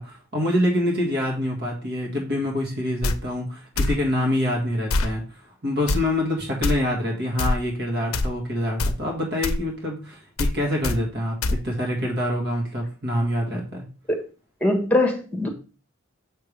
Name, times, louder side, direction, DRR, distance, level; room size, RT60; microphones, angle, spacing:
voice 1, 0.0-5.2 5.6-11.4 11.6-13.8, left 1 dB, 50° right, 1.9 m, -26 dB
sound 1, 3.0-3.2 3.8-4.0 4.9-5.1 5.9-6.0 6.6-6.7 7.4-7.6 8.1-8.3 8.8-9.0 9.4-9.6 10.4-10.6 10.8-11.0 11.4-11.6, left 2 dB, 80° left, 0.6 m, -23 dB
voice 2, 14.6-15.5, left 1 dB, 5° left, 1.4 m, -21 dB
6.9 x 5.7 x 3.4 m
head